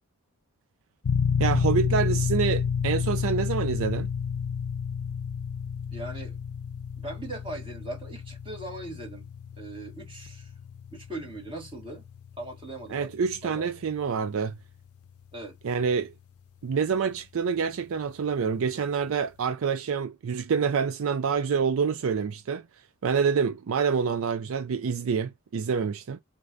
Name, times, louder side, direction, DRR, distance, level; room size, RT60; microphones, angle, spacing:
sound 1, 1.0-15.5, left 6 dB, 85° left, 0.5 m, -31 dB
voice 1, 1.4-4.1 12.9-14.6 15.6-16.1 16.6-22.6 23.0-26.2, right 6 dB, 70° right, 0.4 m, -27 dB
voice 2, 5.9-6.4 7.0-9.3 9.6-10.5 10.9-12.0 12.4-13.1 13.4-13.7 15.3-15.6, right 2 dB, 25° right, 1.7 m, -39 dB
6.4 x 2.6 x 2.6 m
head